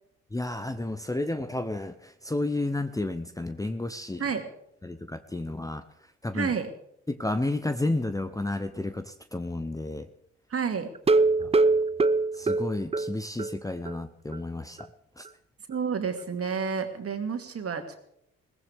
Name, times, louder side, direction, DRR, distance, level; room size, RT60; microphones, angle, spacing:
voice 1, 0.3-4.2 4.8-5.8 6.2-6.5 7.1-10.1 11.4-11.5 12.4-14.9 15.2-15.3, left 2 dB, 10° left, 10 dB, 0.9 m, -31 dB
voice 2, 6.3-6.7 10.5-10.9 15.7-18.0, right 6 dB, 45° right, 5 dB, 2.5 m, -30 dB
sound 1, 11.0-13.5 13.9-14.0 14.3-14.4 14.8-14.9, right 3 dB, 20° right, 0.7 m, -23 dB
21.5 x 16.5 x 3.6 m, 0.73 s
hypercardioid pair, 45°, 33 cm